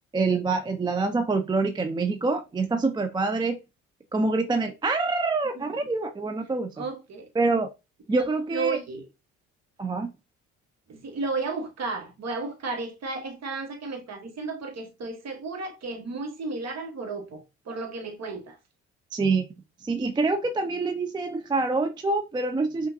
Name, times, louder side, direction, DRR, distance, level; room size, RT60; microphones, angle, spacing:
voice 1, 0.1-3.6 4.1-6.7 7.4-7.7 8.1-8.8 9.8-10.1 19.1-19.4 19.8-22.9, right 3 dB, 10° right, 0.4 m, -26 dB
voice 2, 6.8-7.3 8.1-8.2 8.5-9.1 10.9-18.6, right 3 dB, 40° right, 1.3 m, -33 dB
5.6 x 2.5 x 2.6 m
figure-of-eight pair, 50°, 40 cm